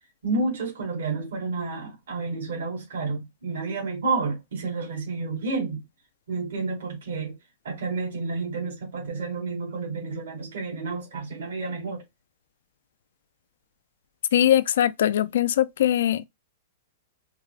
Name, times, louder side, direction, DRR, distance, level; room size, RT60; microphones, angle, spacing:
voice 1, 0.2-5.8 6.3-7.4 7.6-12.0, right 3 dB, 75° right, 2.0 m, -30 dB
voice 2, 14.3-16.3, left 11 dB, 70° left, 0.3 m, -21 dB
4.5 x 2.0 x 2.2 m
hypercardioid pair, 155°, 0 cm